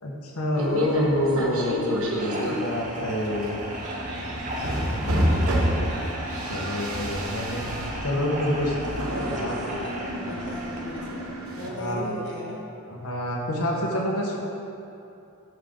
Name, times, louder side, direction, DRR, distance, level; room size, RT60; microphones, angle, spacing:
voice 1, 0.0-3.6 4.9-5.6 6.5-7.6 8.0-8.8 9.3-9.5 11.8-12.1 12.9-14.4, left 1 dB, 85° left, -2 dB, 1.4 m, -27 dB
sound 1, 0.5-11.7, equal, 75° right, 1.1 m, -30 dB
sound 2, 2.0-11.0, right 1 dB, 35° right, 0.9 m, -36 dB
voice 2, 9.1-11.2 11.5-12.6, equal, 55° left, -4 dB, 1.5 m, -36 dB
13.0 x 5.5 x 3.9 m, 2.7 s
head